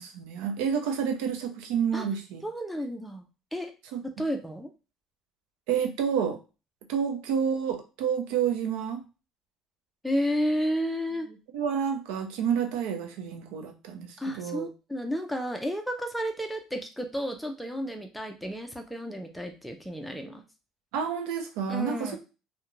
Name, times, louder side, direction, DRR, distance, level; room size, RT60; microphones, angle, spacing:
voice 1, 0.0-2.4 3.9-4.0 5.7-6.4 6.9-9.0 11.5-14.7 20.9-22.2, right 7 dB, 80° right, 5 dB, 0.5 m, -29 dB
voice 2, 2.4-3.2 3.5-3.7 4.0-4.7 10.0-11.3 14.2-20.4 21.7-22.2, equal, ahead, 3 dB, 0.4 m, -32 dB
2.4 x 2.1 x 3.0 m, 0.31 s
cardioid pair, 155°, 0 cm